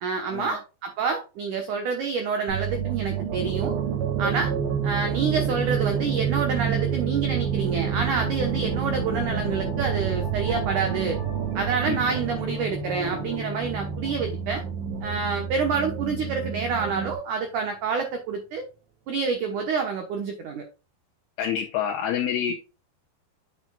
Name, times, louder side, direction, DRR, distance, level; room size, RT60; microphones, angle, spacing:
voice 1, 0.0-3.8 4.2-4.5 4.8-11.2 11.6-14.6 15.0-18.6 19.1-20.6 22.5-22.6, right 5 dB, 75° right, 1.9 m, -28 dB
sound 1, 2.5-17.1, right 6 dB, 90° right, 4.7 m, -32 dB
sound 2, 3.3-16.0, right 8 dB, 50° right, 2.4 m, -30 dB
voice 2, 21.4-22.5, left 9 dB, 75° left, 2.7 m, -27 dB
8.7 x 7.4 x 2.3 m
omnidirectional pair, 5.1 m